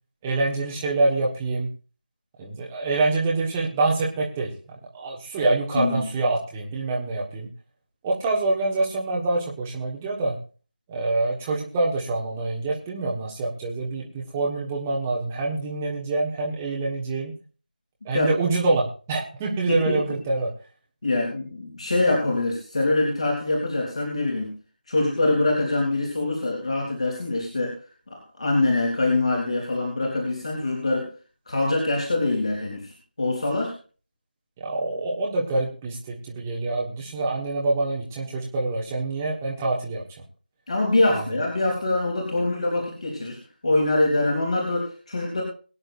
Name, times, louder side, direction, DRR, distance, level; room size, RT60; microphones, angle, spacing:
voice 1, 0.2-1.7 2.4-4.5 4.9-7.5 8.0-10.4 10.9-17.3 18.0-20.5 34.6-40.0 41.1-41.2, right 2 dB, 10° right, -2 dB, 1.5 m, -26 dB
voice 2, 5.7-6.1 18.1-18.3 19.7-20.0 21.0-24.5 24.9-27.7 28.1-31.1 31.5-33.7 40.7-43.4 43.6-45.4, left 2 dB, 40° left, 0 dB, 3.2 m, -24 dB
22.0 x 9.6 x 2.6 m, 0.36 s
figure-of-eight pair, 165°, 5 cm